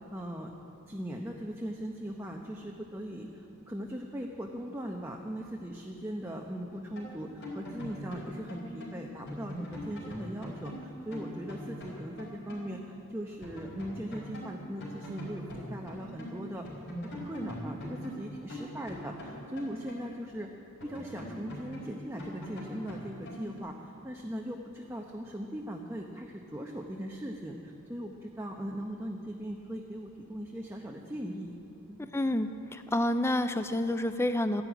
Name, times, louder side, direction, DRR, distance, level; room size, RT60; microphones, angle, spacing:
voice 1, 0.1-0.5 0.9-16.7 17.0-20.5 20.8-31.6 31.9-32.1, equal, 10° right, 0 dB, 0.9 m, -39 dB
sound 1, 6.9-12.7 13.0-13.1 13.4-16.4 16.6-20.4 20.8-23.6, left 1 dB, 55° left, 4.8 m, -42 dB
voice 2, 32.0-34.6, left 1 dB, 10° left, 9 dB, 0.4 m, -29 dB
13.5 x 11.0 x 9.0 m, 2.8 s
head